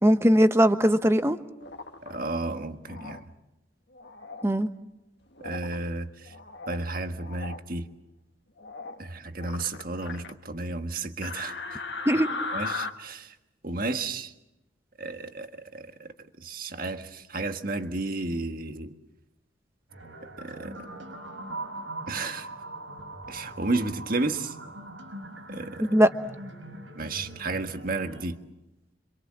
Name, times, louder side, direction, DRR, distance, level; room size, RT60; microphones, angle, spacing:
voice 1, 0.0-1.4 4.4-4.7 12.1-12.3 25.8-26.1, equal, 15° right, 9 dB, 1.1 m, -20 dB
sound 1, 1.6-2.2 2.9-3.2 3.9-4.5 5.4-5.8 6.2-6.8 7.2-7.6 8.6-9.0 9.4-10.3 11.2-12.9, left 3 dB, 60° left, 1.9 m, -37 dB
voice 2, 2.0-3.2 5.4-6.3 6.7-7.9 9.0-11.8 12.5-13.4 13.6-14.3 15.0-18.9 20.4-20.9 22.1-22.5 23.3-24.6 25.5-25.9 26.9-28.4, right 2 dB, 45° right, 7 dB, 1.6 m, -32 dB
sound 2, 19.9-28.3, right 2 dB, 85° right, 6.0 m, -41 dB
27.0 x 26.0 x 7.5 m, 0.93 s
head